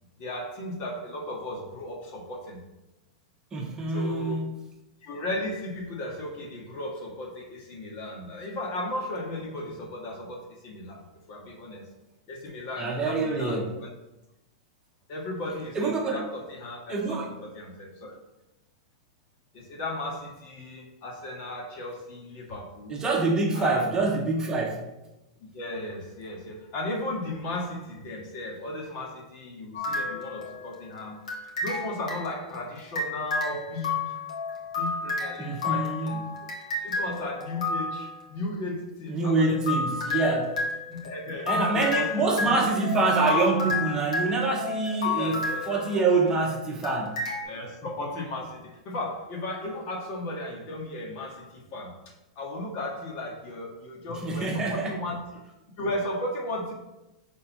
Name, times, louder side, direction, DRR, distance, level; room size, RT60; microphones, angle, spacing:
voice 1, 0.2-2.6 3.9-4.4 5.0-11.8 12.3-13.9 15.1-18.1 19.5-23.0 23.5-24.0 25.5-31.2 31.6-34.0 34.8-36.3 36.8-40.3 40.9-42.1 42.4-42.7 45.1-45.8 47.4-52.0 52.4-55.4 55.8-56.7, left 1 dB, 45° left, 0 dB, 1.8 m, -35 dB
voice 2, 3.5-4.5 12.8-13.7 15.7-16.2 16.9-17.3 22.9-24.8 35.4-36.3 39.1-40.5 41.5-45.4 45.7-47.2 54.2-55.0, right 3 dB, 20° right, 0 dB, 1.0 m, -26 dB
sound 1, 29.7-30.8 31.3-38.2 39.2-46.4 46.8-47.4, left 3 dB, 85° left, 1.6 m, -32 dB
6.7 x 3.9 x 4.3 m, 0.96 s
hypercardioid pair, 130°, 3 cm